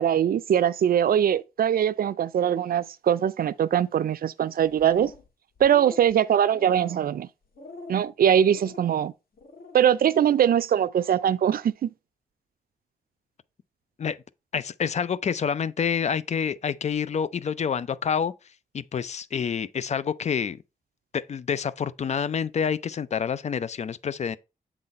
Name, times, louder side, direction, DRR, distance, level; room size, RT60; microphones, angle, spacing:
voice 1, 0.0-5.1 5.6-7.3 7.9-9.1 9.7-11.9, right 9 dB, 85° right, 0.4 m, -22 dB
sound 1, 4.6-5.3 5.6-6.1 6.5-7.1 7.5-8.0 8.5-8.9 9.3-9.8, left 3 dB, 90° left, 1.8 m, -44 dB
voice 2, 14.5-18.3 18.7-20.6 21.1-24.4, left 7 dB, 50° left, 0.4 m, -27 dB
7.5 x 4.0 x 4.1 m
wide cardioid pair, 150°, 15 cm